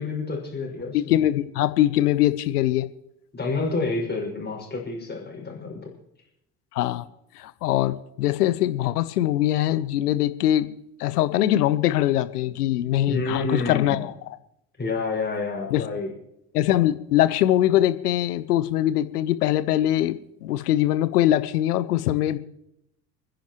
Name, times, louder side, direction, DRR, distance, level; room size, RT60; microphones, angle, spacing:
voice 1, 0.0-1.2 3.3-5.9 13.1-14.0 14.8-16.1, left 3 dB, 20° left, -1 dB, 5.7 m, -29 dB
voice 2, 0.9-2.9 6.7-7.0 7.4-10.7 11.0-14.0 15.7-15.8 16.5-22.4, left 13 dB, 70° left, 14 dB, 1.0 m, -22 dB
30.0 x 10.5 x 3.1 m, 0.79 s
figure-of-eight pair, 65°, 48 cm